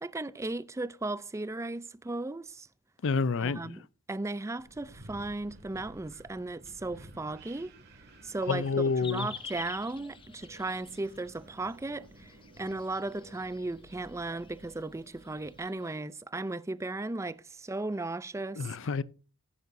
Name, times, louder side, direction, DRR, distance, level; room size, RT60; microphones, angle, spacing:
voice 1, 0.0-2.7 3.4-3.8 4.1-7.7 8.2-8.7 9.0-18.8, right 2 dB, 15° right, 0.4 m, -36 dB
voice 2, 3.0-3.8 8.5-9.3 18.6-19.0, left 4 dB, 55° left, 0.5 m, -28 dB
Wind, 4.6-15.6, right 1 dB, 50° right, 2.1 m, -54 dB
sound 1, 9.0-16.0, left 5 dB, 25° left, 0.8 m, -49 dB
14.5 x 9.5 x 2.6 m
head